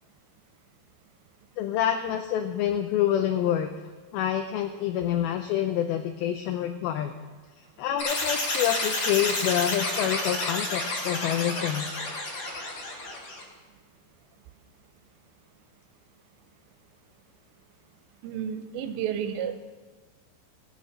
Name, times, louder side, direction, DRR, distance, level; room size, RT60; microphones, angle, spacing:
voice 1, 1.6-3.7 4.1-7.1 7.8-11.9, left 10 dB, 90° left, 7 dB, 2.1 m, -27 dB
sound 1, 8.0-13.4, left 2 dB, 45° left, 3.0 m, -30 dB
voice 2, 18.2-19.5, right 9 dB, 85° right, 9 dB, 3.1 m, -31 dB
17.0 x 6.4 x 6.5 m, 1.3 s
omnidirectional pair, 4.9 m